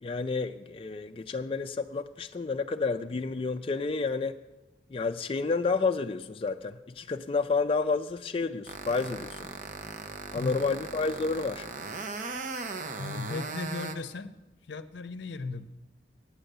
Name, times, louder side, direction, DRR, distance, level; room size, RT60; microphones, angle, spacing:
voice 1, 0.0-4.4 4.9-9.5 10.3-11.7, left 4 dB, 30° left, 6 dB, 0.3 m, -30 dB
sound 1, 8.7-13.9, right 4 dB, 45° right, 0.8 m, -38 dB
voice 2, 10.3-10.8 13.0-14.4 14.7-15.7, left 3 dB, 75° left, 13 dB, 0.6 m, -36 dB
8.9 x 8.7 x 6.7 m, 1.1 s
head